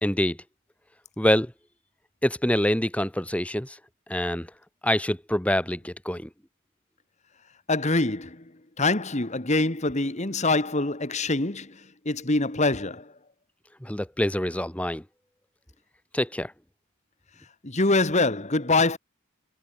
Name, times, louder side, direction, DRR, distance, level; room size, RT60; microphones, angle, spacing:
voice 1, 0.0-0.4 1.2-1.5 2.2-3.8 4.1-4.5 4.8-6.3 13.8-15.0 16.1-16.5, left 1 dB, 5° left, 1.8 m, -25 dB
voice 2, 7.7-8.4 8.8-11.8 12.1-13.1 17.6-19.0, left 2 dB, 35° left, 1.8 m, -24 dB
head